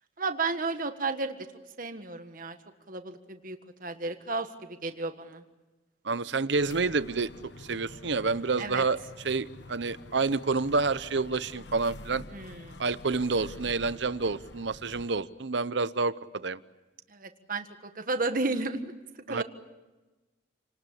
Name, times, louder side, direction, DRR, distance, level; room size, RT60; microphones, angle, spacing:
voice 1, 0.2-1.4 1.8-2.6 2.9-5.4 8.6-8.8 12.3-12.8 17.1-17.7 17.9-18.9 19.3-19.4, right 3 dB, 45° right, 7 dB, 1.5 m, -33 dB
voice 2, 6.0-7.3 7.6-9.0 9.2-12.2 12.8-16.6 19.3-19.4, right 4 dB, 65° right, 15 dB, 0.8 m, -28 dB
sound 1, 6.5-15.1, left 2 dB, 65° left, 1.1 m, -47 dB
28.5 x 19.5 x 8.5 m, 1.2 s
head